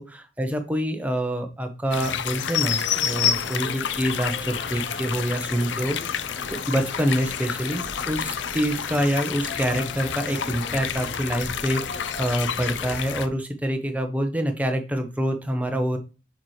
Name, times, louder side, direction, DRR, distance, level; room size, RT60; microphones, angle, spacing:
voice 1, 0.0-6.2 6.7-16.0, equal, 10° right, 5 dB, 0.7 m, -26 dB
Texture of Water, 1.9-13.3, left 8 dB, 80° left, 0.4 m, -29 dB
sound 1, 1.9-13.3, left 2 dB, 40° left, 0.7 m, -39 dB
6.5 x 4.5 x 3.2 m, 0.32 s
head